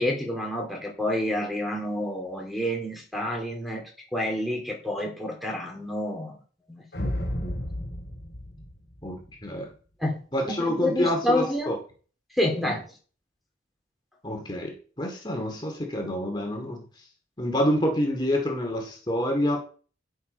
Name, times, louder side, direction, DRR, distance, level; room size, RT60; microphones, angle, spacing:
voice 1, 0.0-6.4 6.7-7.2 7.5-7.6 10.0-11.7 12.4-12.8, left 1 dB, ahead, 1 dB, 2.9 m, -29 dB
sound 1, 6.9-9.4, equal, 60° left, 3.4 m, -33 dB
voice 2, 7.0-7.6 9.0-9.7 10.3-11.8 12.6-12.8 14.2-16.8 17.4-19.6, equal, 25° left, 1 dB, 2.4 m, -28 dB
10.5 x 9.9 x 4.4 m, 0.40 s
head